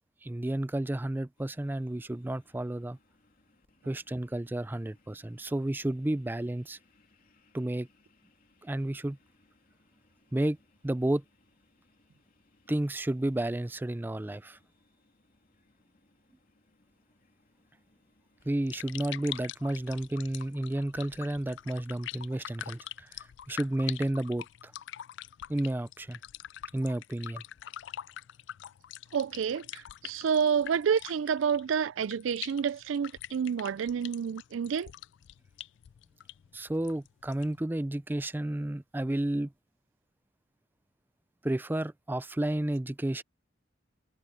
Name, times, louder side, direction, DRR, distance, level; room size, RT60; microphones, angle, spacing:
voice 1, 0.2-3.0 3.9-6.8 7.5-7.9 8.6-9.2 10.3-10.6 10.8-11.2 12.7-14.6 18.5-24.7 25.5-26.2 26.7-27.4 36.5-39.5 41.4-43.2, right 1 dB, 10° right, 0.4 m, -31 dB
sound 1, 1.4-19.5, left 2 dB, 50° left, 3.2 m, -68 dB
sound 2, 18.5-37.6, left 12 dB, 65° left, 0.3 m, -45 dB
voice 2, 29.1-34.9, right 7 dB, 80° right, 0.4 m, -29 dB
head